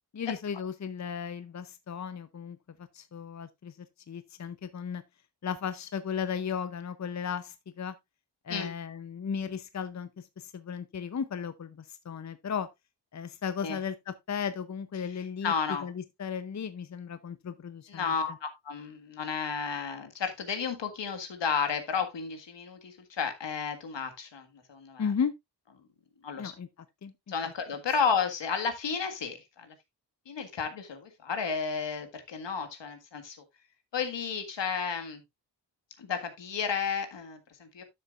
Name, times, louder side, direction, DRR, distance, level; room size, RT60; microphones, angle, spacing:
voice 1, 0.1-2.6 2.9-3.7 4.1-5.0 5.4-7.9 8.4-12.7 13.1-15.5 15.8-18.4 25.0-25.3 26.4-26.7 27.0-27.1 27.4-27.5, left 7 dB, 40° left, 0.7 m, -35 dB
voice 2, 15.4-15.9 17.9-25.1 26.2-26.5 27.3-29.7 30.3-33.4 33.9-35.2 36.0-37.8, left 6 dB, 80° left, 1.8 m, -32 dB
12.0 x 6.8 x 2.4 m
wide cardioid pair, 130°, 43 cm